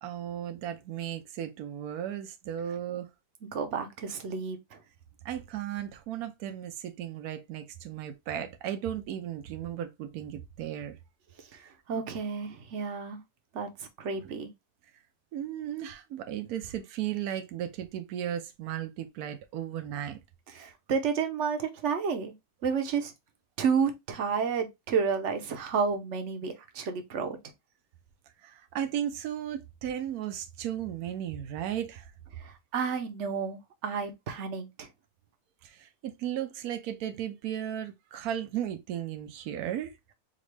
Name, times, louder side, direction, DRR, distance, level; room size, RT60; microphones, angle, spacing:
voice 1, 0.0-3.1 5.2-10.9 14.2-14.3 15.3-20.2 28.4-32.1 35.6-40.0, right 10 dB, 80° right, 1.1 m, -35 dB
voice 2, 3.5-4.8 11.5-13.2 13.5-14.5 20.5-22.3 22.6-23.1 23.6-27.4 32.4-34.9, right 6 dB, 55° right, 1.0 m, -31 dB
5.2 x 2.5 x 3.2 m
omnidirectional pair, 1.6 m